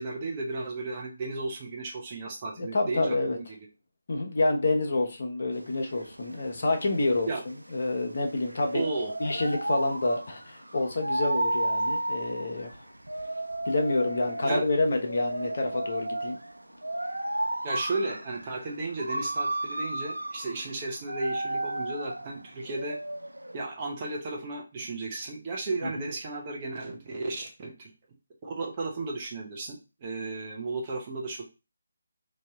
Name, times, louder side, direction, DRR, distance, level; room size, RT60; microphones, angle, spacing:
voice 1, 0.0-3.4 7.3-7.4 8.7-9.1 14.4-14.6 17.6-23.0 23.5-27.7 28.4-31.5, right 3 dB, 30° right, -1 dB, 1.1 m, -34 dB
voice 2, 2.6-3.4 4.1-8.8 9.2-12.8 13.6-16.4 25.8-26.0, left 2 dB, 50° left, 3 dB, 0.8 m, -28 dB
sound 1, 5.5-23.6, right 1 dB, 90° right, 0.3 m, -33 dB
3.2 x 2.7 x 3.6 m, 0.29 s
figure-of-eight pair, 150°, 0 cm